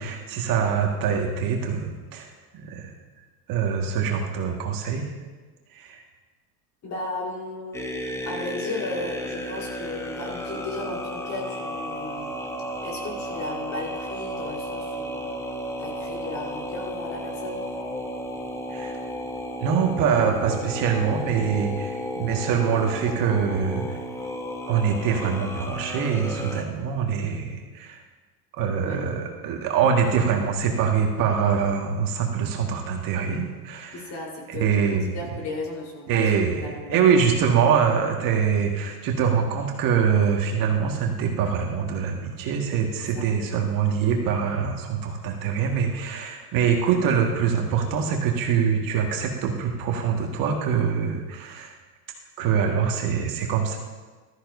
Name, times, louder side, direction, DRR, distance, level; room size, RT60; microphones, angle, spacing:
voice 1, 0.0-2.9 3.5-5.1 5.7-6.0 18.7-19.0 19.6-24.0 24.7-28.0 28.5-34.1 34.5-35.2 36.1-51.7 52.4-53.8, right 7 dB, 45° right, 1 dB, 1.9 m, -24 dB
voice 2, 6.8-7.9 8.2-12.4 12.8-15.3 15.8-17.6 28.7-29.1 33.9-36.3 36.6-37.2 43.1-43.2, left 2 dB, 35° left, -1 dB, 4.2 m, -35 dB
sound 1, 7.7-26.6, equal, 5° left, 0.9 m, -33 dB
14.5 x 13.5 x 2.7 m, 1.3 s
hypercardioid pair, 110°, 47 cm